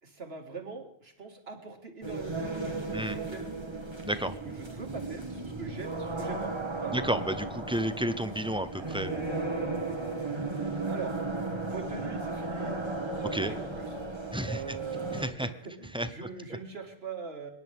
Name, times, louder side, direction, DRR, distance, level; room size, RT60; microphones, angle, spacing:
voice 1, 0.0-3.5 4.2-6.5 6.8-7.0 10.9-11.1 11.7-12.8 13.1-13.9 14.4-17.5, right 4 dB, 75° right, 3 dB, 2.4 m, -41 dB
sound 1, 2.0-15.2, right 3 dB, 25° right, 1.9 m, -35 dB
voice 2, 6.9-9.4 13.3-13.5 14.3-14.6 15.1-15.5 15.9-16.1, right 1 dB, 5° right, 11 dB, 0.7 m, -31 dB
24.5 x 11.0 x 3.6 m, 0.72 s
omnidirectional pair, 1.1 m